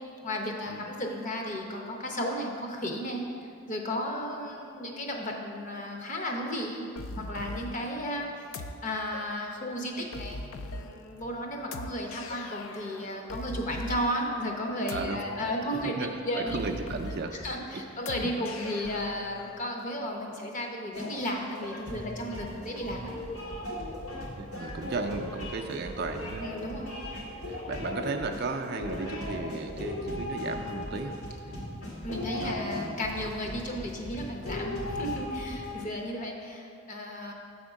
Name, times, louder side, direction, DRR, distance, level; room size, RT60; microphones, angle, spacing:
voice 1, 0.2-3.3 3.7-8.5 8.8-10.4 10.7-15.9 16.2-16.6 17.3-23.1 26.4-26.9 32.0-37.3, equal, 35° left, 1 dB, 0.7 m, -34 dB
sound 1, 7.0-19.6, left 2 dB, 65° left, 0.4 m, -42 dB
voice 2, 16.0-17.3 18.2-18.3 24.1-26.4 27.5-31.1 31.5-31.8 32.4-33.0, right 3 dB, 50° right, 4 dB, 0.4 m, -35 dB
sound 2, 20.9-35.8, left 1 dB, 85° left, 1.8 m, -37 dB
7.0 x 3.6 x 6.3 m, 2.4 s
head